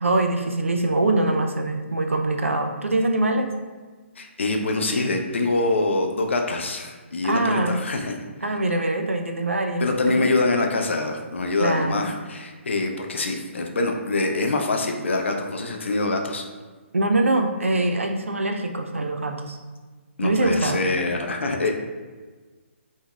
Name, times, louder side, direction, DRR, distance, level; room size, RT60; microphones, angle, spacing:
voice 1, 0.0-3.5 7.2-7.8 8.4-10.3 11.6-12.0 16.9-19.6 20.2-20.8, right 2 dB, 80° right, 4 dB, 0.4 m, -23 dB
voice 2, 4.2-8.1 9.8-16.4 20.2-21.7, left 2 dB, 65° left, 3 dB, 0.4 m, -24 dB
2.8 x 2.6 x 2.3 m, 1.4 s
figure-of-eight pair, 135°, 7 cm